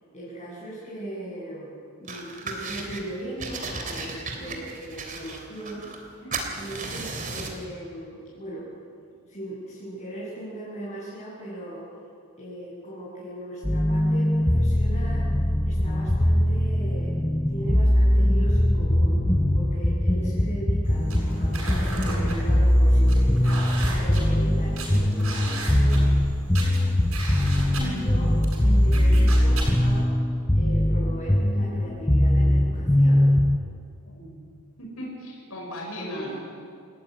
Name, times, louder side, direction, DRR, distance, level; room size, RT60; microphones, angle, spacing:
voice 1, 0.1-6.2 6.5-8.7 9.3-11.8 12.4-15.3 15.6-17.1 17.5-19.2 19.5-21.6 22.0-23.6 24.0-26.1 27.8-30.1 30.5-33.3 35.9-36.3, right 1 dB, 30° left, -8 dB, 7.9 m, -38 dB
sound 1, 2.1-3.0 3.4-6.1 6.3-7.6, right 3 dB, 35° right, 3.4 m, -35 dB
voice 2, 6.2-6.6 34.0-34.4 34.8-36.5, equal, 80° left, -2 dB, 6.1 m, -38 dB
sound 2, 13.6-33.6, left 1 dB, 10° left, 0.6 m, -21 dB
sound 3, 20.8-30.0, right 1 dB, 75° right, 7.7 m, -35 dB
29.0 x 14.5 x 9.9 m, 2.4 s
head